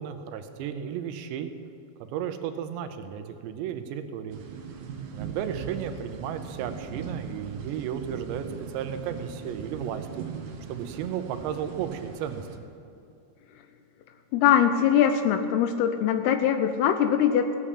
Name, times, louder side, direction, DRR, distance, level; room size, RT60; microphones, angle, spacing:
voice 1, 0.0-1.5 2.1-4.4 5.1-8.5 8.7-10.1 10.7-12.5, right 9 dB, 85° right, 8 dB, 3.1 m, -34 dB
sound 1, 4.3-12.6, right 6 dB, 65° right, 1.9 m, -39 dB
voice 2, 14.3-17.5, left 9 dB, 80° left, 8 dB, 2.4 m, -22 dB
17.5 x 7.4 x 8.4 m, 2.6 s
omnidirectional pair, 5.0 m